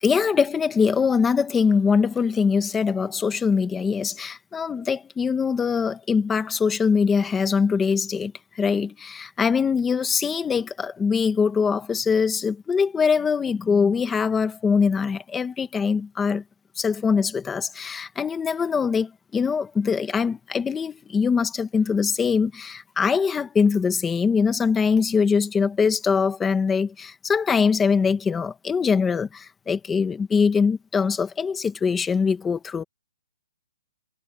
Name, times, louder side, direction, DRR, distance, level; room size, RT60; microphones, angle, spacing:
voice 1, 0.0-16.4 16.8-32.8, left 5 dB, 5° left, 1.3 m, -23 dB
hypercardioid pair, 180°, 0 cm